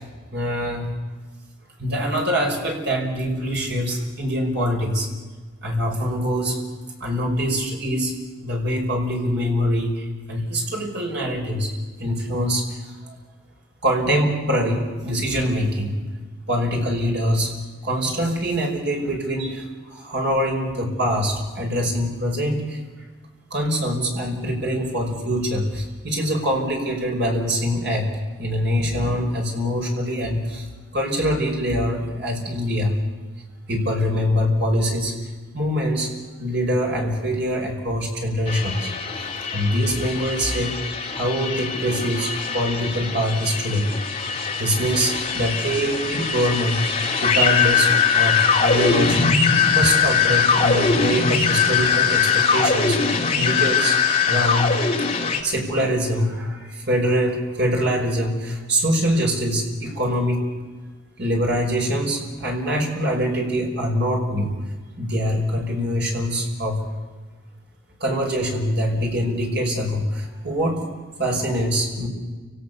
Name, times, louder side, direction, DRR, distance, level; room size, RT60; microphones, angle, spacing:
voice 1, 0.3-0.9 1.8-5.1 5.6-6.6 7.0-8.1 8.4-11.7 12.0-13.2 13.8-15.9 16.5-17.5 17.8-22.8 23.5-28.1 28.4-30.7 30.9-33.0 33.7-35.1 35.5-36.1 36.4-38.9 39.1-39.3 39.5-40.7 41.1-43.9 44.6-49.4 49.7-54.0 54.2-54.7 55.4-60.4 61.2-64.5 65.0-66.9 68.0-70.8 71.2-72.1, equal, 55° right, 0 dB, 5.5 m, -24 dB
sound 1, 38.5-55.4, left 5 dB, 30° left, 2.4 m, -21 dB
29.5 x 18.0 x 7.0 m, 1.3 s
head